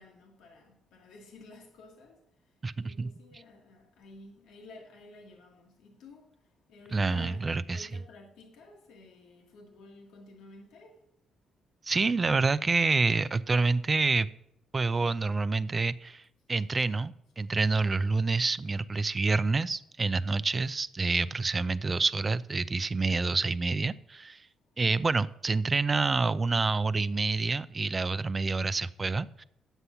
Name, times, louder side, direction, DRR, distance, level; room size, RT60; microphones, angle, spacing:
voice 1, 0.0-2.5 2.8-11.0, left 3 dB, 85° left, 1.6 m, -52 dB
voice 2, 2.6-3.4 6.9-7.9 11.8-14.3 14.7-16.2 16.5-24.5 24.8-29.4, right 3 dB, 30° right, 0.4 m, -28 dB
9.8 x 8.1 x 5.7 m
cardioid pair, 90°, 0 cm